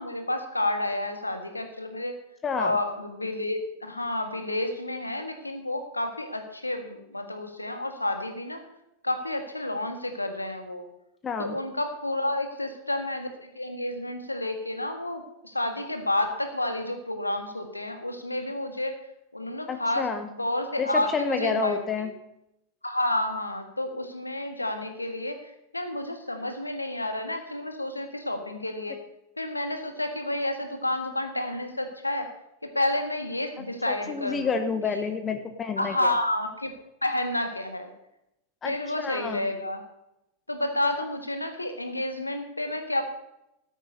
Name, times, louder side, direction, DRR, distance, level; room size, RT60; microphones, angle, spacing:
voice 1, 0.0-2.2 2.6-8.6 9.0-10.8 11.4-13.3 13.5-18.9 19.3-20.1 20.4-21.8 22.8-29.0 29.4-32.3 32.7-34.7 35.8-36.7 37.0-37.9 38.6-39.8 40.5-43.0, left 1 dB, 85° left, 6 dB, 1.6 m, -30 dB
voice 2, 2.4-2.8 11.2-11.6 19.7-20.3 20.8-22.1 33.9-36.1 38.6-39.5, left 5 dB, 20° left, 9 dB, 1.0 m, -29 dB
13.5 x 9.1 x 5.3 m, 0.86 s
figure-of-eight pair, 90°, 0 cm